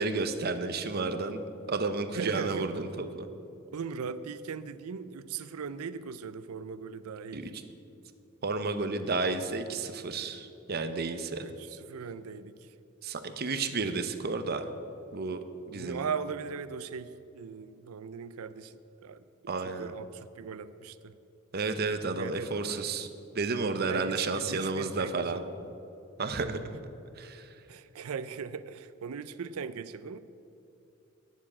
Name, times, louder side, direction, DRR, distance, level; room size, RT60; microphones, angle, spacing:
voice 1, 0.0-1.4 1.7-3.3 7.3-7.5 8.4-11.4 13.0-14.7 15.1-15.4 15.7-16.0 19.5-19.9 21.5-23.1 23.3-25.4 26.2-26.6 27.2-27.5, right 3 dB, 45° right, 8 dB, 0.7 m, -31 dB
voice 2, 2.1-2.7 3.7-7.5 11.4-12.7 15.7-21.2 22.2-22.9 23.9-25.7 26.4-26.7 27.7-30.2, right 6 dB, 85° right, 14 dB, 0.5 m, -39 dB
9.5 x 7.3 x 8.5 m, 2.7 s
head